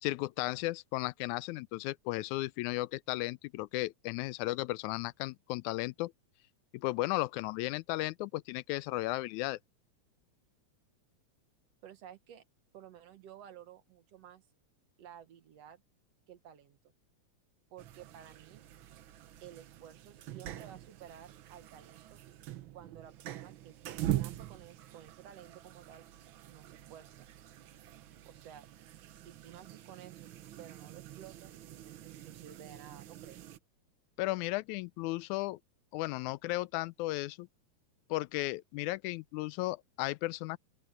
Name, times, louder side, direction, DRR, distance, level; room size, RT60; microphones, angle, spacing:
voice 1, 0.0-6.1 6.7-9.6 34.2-35.6 35.9-37.5 38.1-40.6, left 19 dB, 85° left, 2.0 m, -35 dB
voice 2, 11.8-12.4 12.7-14.4 15.0-15.8 16.3-16.8 17.7-18.6 19.4-22.2 22.7-23.8 24.1-26.1 26.5-27.2 28.3-28.7 29.2-30.3 30.6-33.5, right 10 dB, 65° right, 2.1 m, -53 dB
sound 1, 17.8-33.6, right 13 dB, 80° right, 1.1 m, -44 dB
open air
omnidirectional pair, 3.3 m